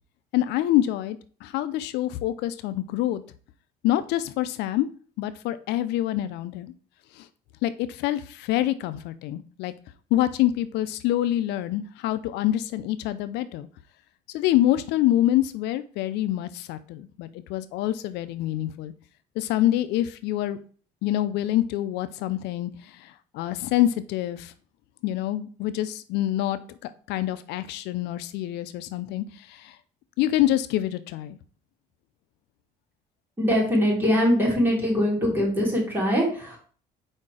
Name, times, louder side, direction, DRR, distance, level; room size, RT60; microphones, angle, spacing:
voice 1, 0.3-3.2 3.8-4.9 5.2-6.7 7.2-7.3 7.6-9.7 10.1-13.7 14.3-18.9 19.4-20.6 21.0-24.5 25.0-29.8 30.2-31.4, left 13 dB, 85° left, 13 dB, 0.4 m, -26 dB
voice 2, 33.4-36.6, equal, 10° right, -5 dB, 3.4 m, -22 dB
4.8 x 4.3 x 4.8 m, 0.43 s
cardioid pair, 110°, 17 cm